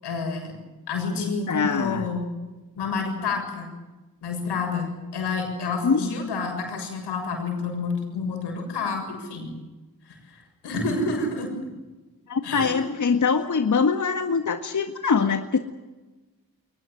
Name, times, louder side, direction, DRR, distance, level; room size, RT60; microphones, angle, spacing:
voice 1, 0.0-0.5 0.9-2.3 2.8-3.7 4.2-9.5 10.1-11.5 12.4-12.7, left 4 dB, 85° left, 4 dB, 7.4 m, -29 dB
voice 2, 1.2-2.1 5.8-6.0 12.3-15.6, left 5 dB, 50° left, 7 dB, 1.8 m, -23 dB
22.5 x 20.0 x 9.3 m, 1.2 s
cardioid pair, 50°, 39 cm